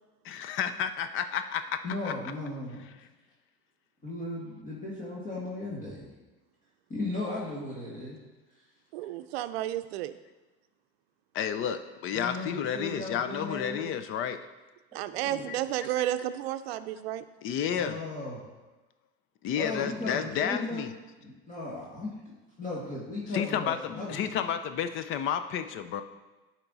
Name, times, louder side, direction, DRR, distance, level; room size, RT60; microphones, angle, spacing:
voice 1, 0.2-1.8 2.0-2.1 11.3-14.4 15.5-15.6 16.0-16.1 17.4-18.0 19.4-20.9 23.3-26.0, left 8 dB, 45° left, 10 dB, 0.6 m, -31 dB
voice 2, 1.8-2.8 4.0-6.1 6.9-8.2 12.1-13.9 15.1-15.5 17.7-18.4 19.5-20.9 21.2-22.2 22.6-24.2, left 2 dB, 25° left, -5 dB, 1.9 m, -36 dB
voice 3, 8.9-10.2 14.9-17.2, right 13 dB, 90° right, 12 dB, 0.5 m, -32 dB
11.5 x 4.5 x 4.0 m, 1.2 s
supercardioid pair, 125°, 30 cm